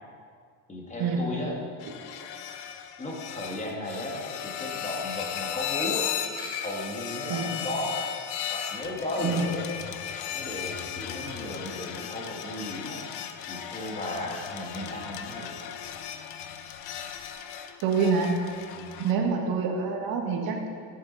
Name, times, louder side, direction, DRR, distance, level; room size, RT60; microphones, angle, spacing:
voice 1, 0.7-1.6 3.0-6.1 6.6-8.0 8.5-9.7 10.3-15.5 18.7-19.0, left 1 dB, 15° left, -2 dB, 1.9 m, -35 dB
sound 1, 1.8-19.1, left 9 dB, 60° left, 0.8 m, -36 dB
voice 2, 17.8-18.3 19.0-20.7, right 5 dB, 55° right, 1 dB, 1.7 m, -26 dB
13.5 x 7.6 x 4.1 m, 2.1 s
cardioid pair, 135°, 44 cm